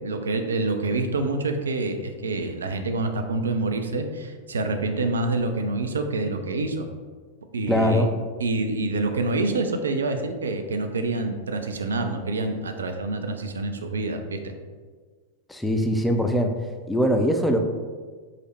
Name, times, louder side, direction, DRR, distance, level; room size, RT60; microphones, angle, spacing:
voice 1, 0.0-6.9 7.5-8.1 8.4-14.5, right 2 dB, 70° right, 6 dB, 0.3 m, -27 dB
voice 2, 7.7-8.1 15.5-16.5 16.9-17.6, equal, 5° left, 4 dB, 0.4 m, -21 dB
4.8 x 2.1 x 3.1 m, 1.5 s
figure-of-eight pair, 90°, 0 cm